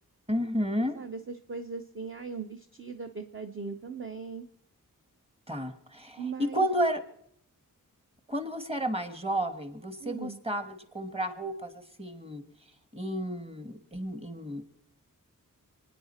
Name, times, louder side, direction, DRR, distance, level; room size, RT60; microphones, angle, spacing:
voice 1, 0.3-1.0 5.5-7.0 8.3-11.7 12.0-12.4 12.9-14.6, equal, 20° right, 9 dB, 1.3 m, -32 dB
voice 2, 0.9-4.5 6.2-6.7 10.0-10.4, right 5 dB, 40° right, 7 dB, 0.7 m, -39 dB
28.5 x 9.9 x 4.3 m, 0.72 s
wide cardioid pair, 145°, 33 cm